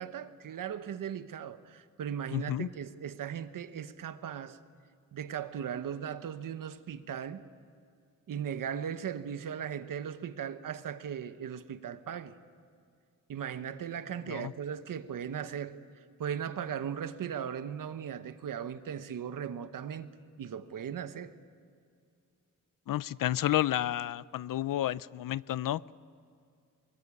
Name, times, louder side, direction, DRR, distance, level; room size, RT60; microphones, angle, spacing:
voice 1, 0.0-4.6 5.1-7.4 8.3-12.3 13.3-15.7 16.2-20.1 20.4-21.3, right 8 dB, 70° right, 1.1 m, -38 dB
voice 2, 2.3-2.7 14.3-14.5 22.9-25.9, left 13 dB, 75° left, 0.5 m, -31 dB
24.5 x 21.5 x 8.5 m
wide cardioid pair, 175°, 34 cm